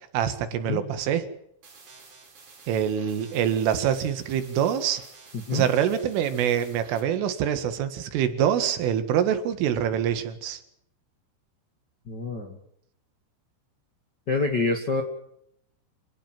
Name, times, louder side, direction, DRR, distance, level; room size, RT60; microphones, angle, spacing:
voice 1, 0.1-1.2 2.7-5.0 5.5-10.6, right 9 dB, 85° right, 10 dB, 4.4 m, -25 dB
sound 1, 1.6-7.0, right 4 dB, 40° right, 5.7 m, -50 dB
voice 2, 12.1-12.6 14.3-15.0, left 3 dB, 75° left, 3 dB, 1.0 m, -26 dB
27.0 x 18.0 x 7.6 m, 0.72 s
omnidirectional pair, 5.6 m